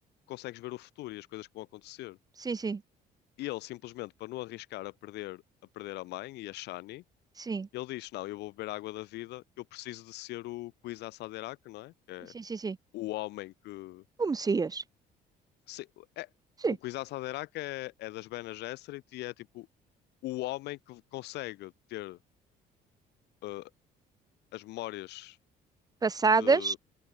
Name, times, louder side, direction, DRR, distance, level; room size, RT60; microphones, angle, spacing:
voice 1, 0.3-2.2 3.4-5.4 5.7-7.0 7.7-12.3 12.9-14.0 15.7-16.3 16.8-19.7 20.2-22.2 23.4-23.7 24.5-25.4 26.4-26.8, left 18 dB, 85° left, 6.6 m, -40 dB
voice 2, 2.4-2.8 7.4-7.7 12.3-12.8 14.2-14.8 16.6-16.8 26.0-26.7, right 4 dB, 20° right, 0.9 m, -27 dB
open air
cardioid pair, 110°, 17 cm